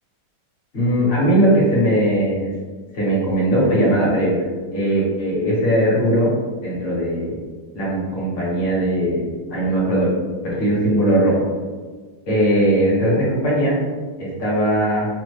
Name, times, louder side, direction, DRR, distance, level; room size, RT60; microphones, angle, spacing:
voice 1, 0.7-2.5 2.9-4.4 4.7-6.3 6.6-7.4 7.7-10.1 10.4-11.4 12.3-13.8 14.2-15.1, right 1 dB, 40° left, -6 dB, 0.8 m, -19 dB
3.4 x 2.0 x 3.2 m, 1.4 s
omnidirectional pair, 2.2 m